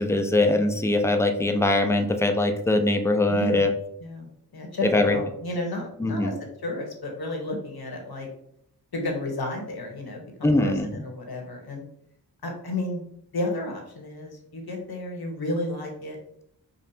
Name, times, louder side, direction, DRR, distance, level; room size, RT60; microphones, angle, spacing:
voice 1, 0.0-3.7 4.9-5.2 6.0-6.3 10.4-11.0, left 2 dB, 5° left, 5 dB, 0.5 m, -22 dB
voice 2, 3.3-3.6 4.0-6.3 6.6-8.3 8.9-11.8 12.4-13.0 13.3-16.2, left 1 dB, 60° left, 1 dB, 1.2 m, -32 dB
5.2 x 2.5 x 2.7 m, 0.71 s
cardioid pair, 60°, 42 cm